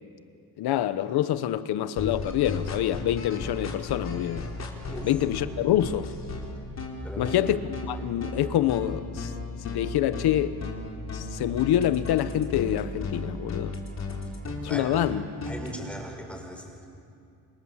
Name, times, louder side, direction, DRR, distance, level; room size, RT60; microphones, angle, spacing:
voice 1, 0.6-4.5 5.0-6.1 7.2-9.3 9.6-10.6 11.1-13.7 14.6-15.3, left 11 dB, 80° left, 1.2 m, -26 dB
sound 1, 2.0-15.7, left 3 dB, 45° left, 4.3 m, -35 dB
voice 2, 7.0-7.3 14.7-14.9 15.5-16.9, equal, 5° left, 5.7 m, -38 dB
27.5 x 26.5 x 7.5 m
cardioid pair, 115°, 38 cm